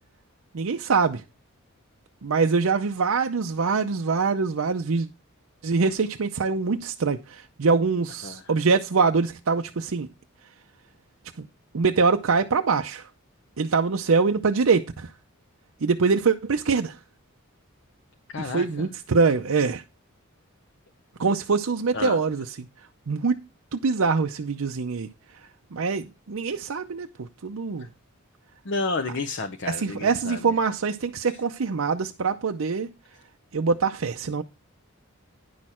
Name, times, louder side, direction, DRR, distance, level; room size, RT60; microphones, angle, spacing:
voice 1, 0.5-1.2 2.2-5.1 5.6-10.1 11.7-13.1 13.6-15.1 15.8-17.0 18.4-19.8 21.2-22.5 23.1-23.4 23.7-25.1 25.7-27.9 29.7-32.9 33.5-34.4, right 4 dB, 75° right, 0.6 m, -24 dB
voice 2, 18.3-18.9 21.9-22.2 27.8-27.9 28.6-30.6 31.3-31.4, left 3 dB, 55° left, 0.7 m, -31 dB
10.0 x 6.3 x 4.3 m
head